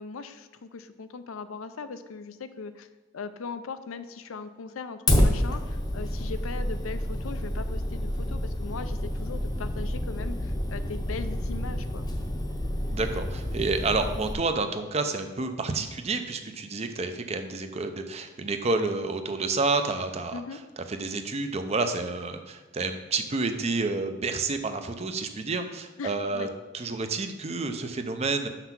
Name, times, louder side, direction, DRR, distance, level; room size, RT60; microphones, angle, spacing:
voice 1, 0.0-2.9 3.1-12.1 20.3-20.6 26.0-26.5, left 4 dB, 80° left, 11 dB, 0.5 m, -39 dB
Fire, 5.1-14.3, left 1 dB, 20° left, 0.7 m, -29 dB
voice 2, 12.9-20.4 20.9-26.5 26.7-28.5, right 3 dB, 30° right, 7 dB, 0.5 m, -29 dB
5.9 x 5.7 x 5.9 m, 1.2 s
head